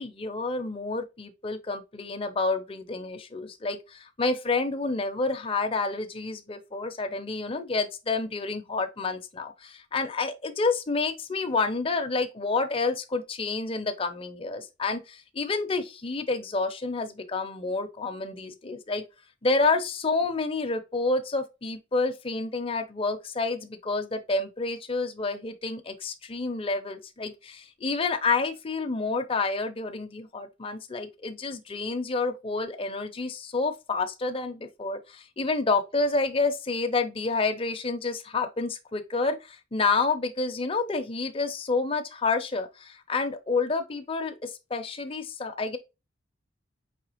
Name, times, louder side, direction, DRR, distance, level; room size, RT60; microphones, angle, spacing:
voice 1, 0.0-19.0 19.4-45.8, left 3 dB, 30° left, 0.5 m, -29 dB
4.9 x 3.2 x 2.9 m
head